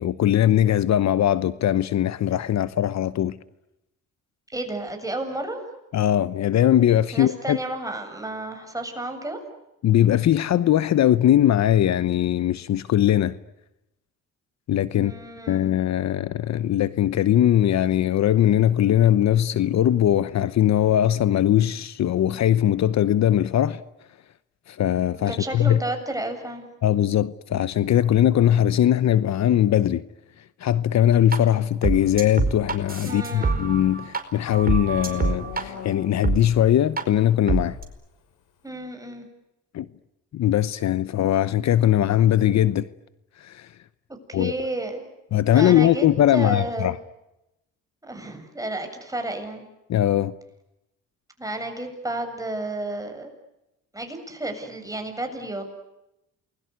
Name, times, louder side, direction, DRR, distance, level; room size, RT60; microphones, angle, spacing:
voice 1, 0.0-3.4 5.9-7.6 9.8-13.3 14.7-15.1 15.5-23.8 24.7-25.8 26.8-30.0 30.6-37.8 39.7-39.9 40.3-42.9 43.4-43.7 44.3-44.5 45.3-47.0 49.9-50.3, left 11 dB, 65° left, 1.0 m, -20 dB
voice 2, 4.5-5.6 7.1-9.4 14.9-15.7 25.3-26.7 33.1-33.6 38.6-39.3 44.3-45.1 45.5-46.9 48.0-49.6 51.4-53.3 53.9-55.7, right 1 dB, 10° right, 7.4 m, -32 dB
sound 1, 31.3-31.4 31.8-34.2 34.5-35.6 36.2-36.4 37.0-37.1 37.5-37.8, right 4 dB, 30° right, 4.8 m, -25 dB
Livestock farm animals working animals, 33.2-36.4, left 6 dB, 85° left, 5.3 m, -43 dB
28.5 x 21.5 x 9.6 m
cardioid pair, 90°, 30 cm